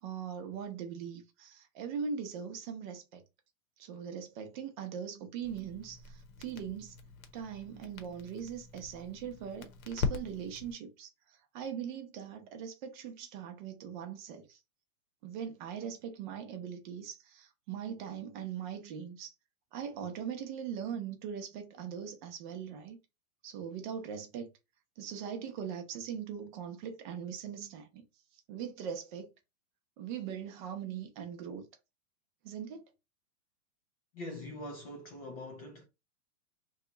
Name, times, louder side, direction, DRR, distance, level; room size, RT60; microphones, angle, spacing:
voice 1, 0.0-3.2 3.8-6.9 7.3-14.6 15.2-19.3 19.7-23.0 23.4-24.5 25.0-28.0 28.5-29.3 30.0-31.7 32.4-32.8, right 7 dB, 35° right, 0.6 m, -41 dB
Crackle, 5.4-10.7, left 5 dB, 70° left, 0.9 m, -41 dB
voice 2, 34.1-35.9, left 1 dB, 30° left, 0.4 m, -43 dB
2.8 x 2.3 x 3.8 m
hypercardioid pair, 145°, 44 cm